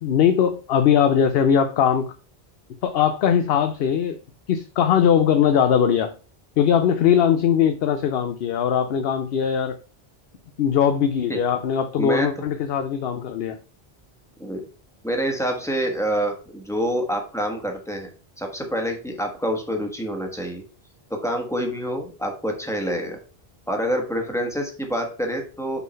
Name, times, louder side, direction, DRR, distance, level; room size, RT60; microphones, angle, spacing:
voice 1, 0.0-2.0 2.8-4.2 4.5-6.1 6.6-9.7 10.6-13.6, left 8 dB, 70° left, 8 dB, 0.8 m, -20 dB
voice 2, 12.0-12.3 14.4-14.6 15.0-18.1 18.4-20.6 21.1-23.2 23.7-25.8, equal, 5° left, 2 dB, 1.4 m, -27 dB
6.0 x 3.8 x 5.3 m, 0.37 s
omnidirectional pair, 1.1 m